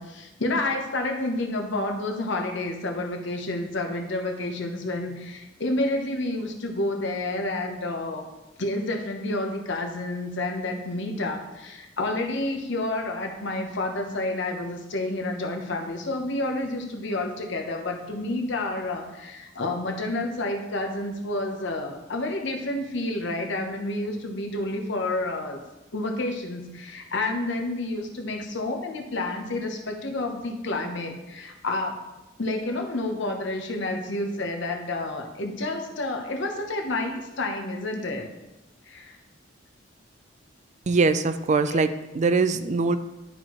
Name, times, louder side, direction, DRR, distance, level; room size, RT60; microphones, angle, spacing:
voice 1, 0.0-8.3 8.6-25.6 25.9-32.0 32.4-38.3 38.9-39.2 41.7-41.8, left 2 dB, 70° left, 3 dB, 1.0 m, -29 dB
voice 2, 40.9-43.0, right 4 dB, 40° right, 11 dB, 0.4 m, -22 dB
11.0 x 4.4 x 3.1 m, 1.0 s
head